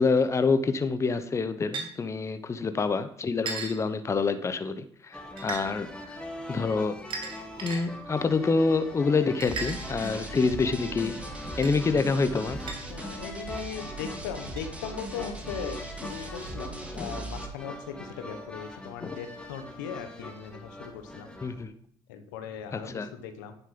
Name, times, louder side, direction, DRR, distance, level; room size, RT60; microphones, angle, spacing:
voice 1, 0.0-5.9 6.5-7.0 7.6-11.1 11.6-12.6 17.0-17.1 19.0-19.1 21.4-21.7 22.7-23.1, left 4 dB, 30° left, 10 dB, 0.9 m, -27 dB
sound 1, 1.7-1.9 3.5-3.8 5.4-5.6 7.1-7.8 9.4-10.3 11.6-11.7 12.7-12.8 13.6-13.7 14.6-14.7, right 4 dB, 55° right, 2.3 m, -35 dB
sound 2, 5.1-21.6, left 1 dB, 10° left, 2.1 m, -42 dB
sound 3, 9.5-17.5, right 2 dB, 15° right, 2.5 m, -40 dB
voice 2, 12.9-21.3 22.1-23.6, left 7 dB, 85° left, 7 dB, 1.2 m, -39 dB
9.8 x 7.5 x 5.2 m, 0.66 s
hypercardioid pair, 70°, 10 cm